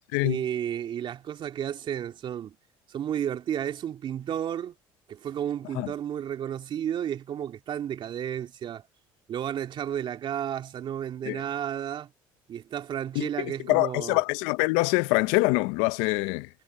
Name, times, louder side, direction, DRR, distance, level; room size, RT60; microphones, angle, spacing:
voice 1, 0.2-2.6 2.9-4.7 5.1-8.8 9.3-12.1 12.5-14.2, right 10 dB, 50° right, 2.8 m, -32 dB
voice 2, 13.2-16.5, left 25 dB, 80° left, 0.6 m, -25 dB
supercardioid pair, 85°, 10 cm